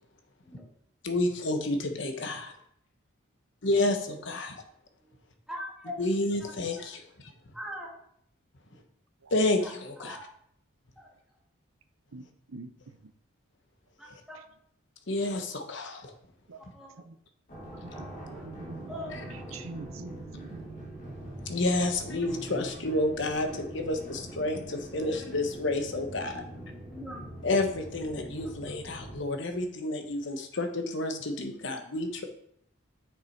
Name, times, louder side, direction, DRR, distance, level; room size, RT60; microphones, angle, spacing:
voice 1, 1.0-2.5 3.6-4.6 6.0-7.0 9.3-10.2 15.1-16.1 21.4-26.4 27.4-32.2, left 2 dB, 60° left, 5 dB, 1.1 m, -30 dB
voice 2, 5.5-6.0 6.3-6.9 7.5-7.9 9.6-10.3 11.0-11.1 14.0-14.4 16.8-16.9 18.9-19.4 24.9-25.1 26.9-27.4 28.4-28.7, left 1 dB, ahead, -3 dB, 1.7 m, -42 dB
voice 3, 12.1-12.7 13.0-13.1 14.3-14.4 16.5-16.6 18.0-20.6 21.2-21.3, right 3 dB, 90° right, 10 dB, 0.7 m, -45 dB
sound 1, 17.5-29.2, right 1 dB, 40° left, 2.1 m, -43 dB
6.7 x 6.1 x 4.5 m, 0.68 s
head